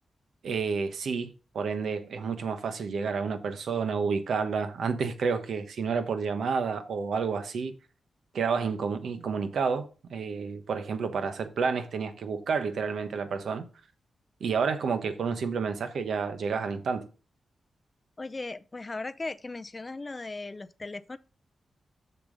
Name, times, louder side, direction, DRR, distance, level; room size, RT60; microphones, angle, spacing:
voice 1, 0.4-7.7 8.3-13.7 14.4-17.1, right 5 dB, 75° right, 1.0 m, -30 dB
voice 2, 18.2-21.2, left 3 dB, 25° left, 0.4 m, -37 dB
6.8 x 6.8 x 3.9 m
wide cardioid pair, 125°, 0 cm